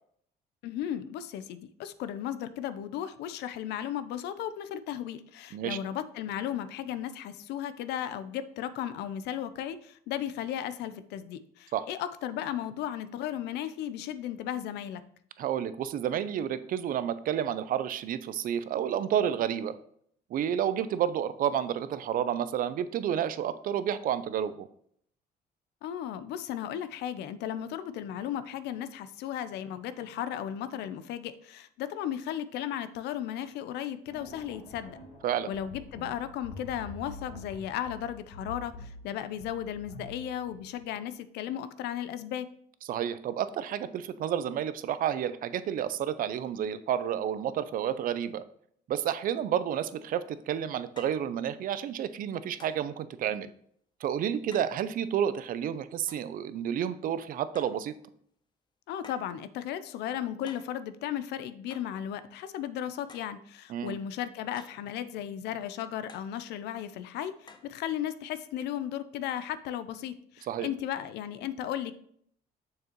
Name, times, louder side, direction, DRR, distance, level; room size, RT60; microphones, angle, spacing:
voice 1, 0.6-15.0 25.8-35.0 35.5-42.5 58.9-71.9, left 10 dB, 80° left, 13 dB, 0.5 m, -35 dB
voice 2, 15.4-19.8 20.3-24.7 35.2-35.5 42.9-48.4 48.9-53.5 54.0-57.9 63.7-63.9 70.5-70.7, right 9 dB, 55° right, 14 dB, 0.5 m, -30 dB
sound 1, 34.1-41.0, left 2 dB, 50° left, 2.4 m, -47 dB
sound 2, 50.1-50.2 51.0-51.3 52.6-52.9 54.5-54.8 56.1-56.3 57.5-57.9 59.0-59.4 60.5-60.8 61.7-62.0 63.1-63.4 64.6-64.9 66.1-66.3 67.5-67.7, left 4 dB, 25° left, 0.8 m, -52 dB
6.7 x 6.5 x 3.0 m, 0.66 s
cardioid pair, 110°, 17 cm